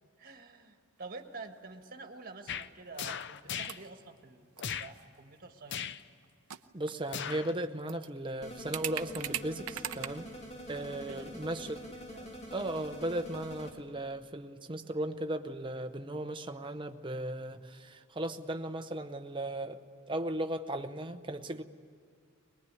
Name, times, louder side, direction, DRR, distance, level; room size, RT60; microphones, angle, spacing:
voice 1, 0.2-6.0 10.7-12.4, right 3 dB, 40° right, 5 dB, 1.5 m, -49 dB
sound 1, 1.2-1.6 1.9-2.0 2.9-3.2 3.5-3.9 4.6-5.1 6.2-6.3 6.5-7.1 7.5-7.6 7.9-8.1 8.7-10.1, right 12 dB, 80° right, 0.7 m, -39 dB
sound 2, 2.5-2.7 2.9-3.8 4.6-4.9 5.7-6.0 7.1-7.5 7.9-8.0, left 8 dB, 55° left, 0.6 m, -38 dB
voice 2, 6.7-10.3 10.7-11.8 12.5-19.8 20.1-21.6, right 1 dB, 20° right, 8 dB, 0.8 m, -36 dB
sound 3, 8.4-13.7, equal, 30° left, 2.2 m, -46 dB
22.5 x 20.5 x 9.7 m, 2.2 s
head